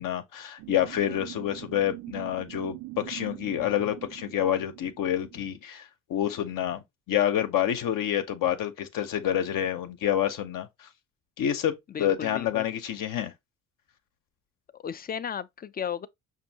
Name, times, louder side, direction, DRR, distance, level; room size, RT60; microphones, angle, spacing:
voice 1, 0.0-6.8 7.1-10.9 11.4-11.7 12.0-13.3, left 10 dB, 70° left, 0.7 m, -28 dB
sound 1, 0.6-5.6, right 19 dB, 85° right, 0.5 m, -43 dB
voice 2, 11.9-12.7 14.7-16.1, left 8 dB, 30° left, 0.4 m, -35 dB
5.3 x 2.7 x 2.7 m
cardioid pair, 75°, 34 cm